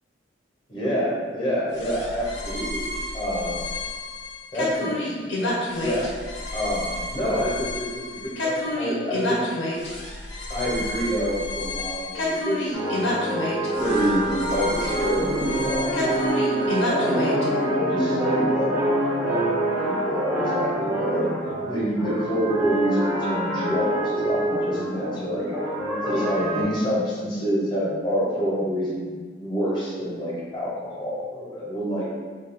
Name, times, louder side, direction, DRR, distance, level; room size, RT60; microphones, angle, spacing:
voice 1, 0.7-3.6 4.5-6.1 6.5-9.4 10.5-12.8 13.8-16.0 16.6-17.3 17.7-18.7 19.2-21.3 21.7-25.5 26.1-32.0, equal, 25° left, -7 dB, 0.8 m, -27 dB
sound 1, 1.7-17.5, left 1 dB, 70° left, 0.6 m, -30 dB
sound 2, 12.7-26.6, right 1 dB, 5° right, 0.5 m, -26 dB
2.3 x 2.3 x 3.4 m, 1.5 s
head